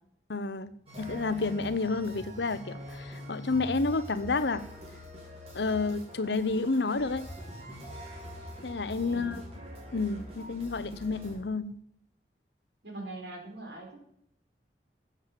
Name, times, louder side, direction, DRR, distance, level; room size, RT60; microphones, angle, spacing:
voice 1, 0.3-0.7 1.0-4.6 5.5-7.3 8.6-9.4 9.9-11.8, left 3 dB, 80° left, 0.8 m, -30 dB
sound 1, 0.9-11.4, equal, 35° right, 4.6 m, -44 dB
voice 2, 9.0-9.4 12.8-14.0, right 2 dB, 85° right, 5.1 m, -42 dB
14.5 x 7.5 x 7.5 m
head